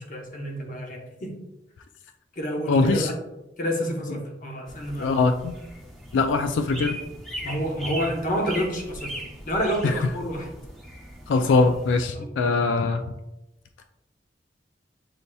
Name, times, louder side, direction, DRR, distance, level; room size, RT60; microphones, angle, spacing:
voice 1, 0.0-1.3 2.4-3.1 3.6-5.2 7.4-10.5 12.1-12.6, equal, 45° left, 1 dB, 0.9 m, -29 dB
voice 2, 2.7-3.1 5.0-5.6 6.1-7.0 9.8-9.9 11.3-13.0, left 3 dB, 85° left, 7 dB, 0.3 m, -22 dB
sound 1, 4.7-12.1, right 1 dB, ahead, 0.7 m, -39 dB
7.6 x 2.7 x 2.3 m, 0.95 s
head